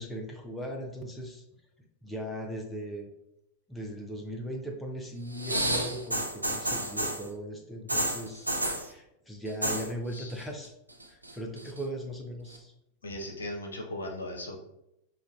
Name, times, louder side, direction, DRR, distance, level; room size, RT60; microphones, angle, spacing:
voice 1, 0.0-1.4 2.0-3.1 3.7-10.7 11.1-12.7, equal, 10° left, 1 dB, 0.5 m, -38 dB
sound 1, 5.3-7.3 7.9-8.9 9.5-9.9 10.1-10.7 11.0-11.8 12.5-12.6, right 1 dB, 85° right, 0.4 m, -30 dB
voice 2, 13.0-14.6, left 1 dB, 70° left, 1 dB, 0.6 m, -37 dB
5.0 x 2.2 x 2.4 m, 0.84 s
figure-of-eight pair, 90°, 0 cm